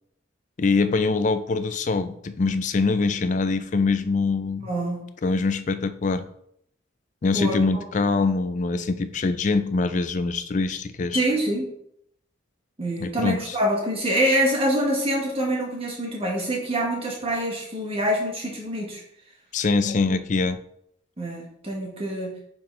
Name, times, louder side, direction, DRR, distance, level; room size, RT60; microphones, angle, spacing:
voice 1, 0.6-4.7 5.2-6.3 7.2-11.2 13.0-13.6 19.5-20.6, left 3 dB, 40° left, 11 dB, 0.4 m, -24 dB
voice 2, 4.6-5.0 7.3-7.8 11.1-11.7 12.8-19.0 21.2-22.3, right 1 dB, 30° right, -1 dB, 1.6 m, -25 dB
7.1 x 3.9 x 3.7 m, 0.72 s
head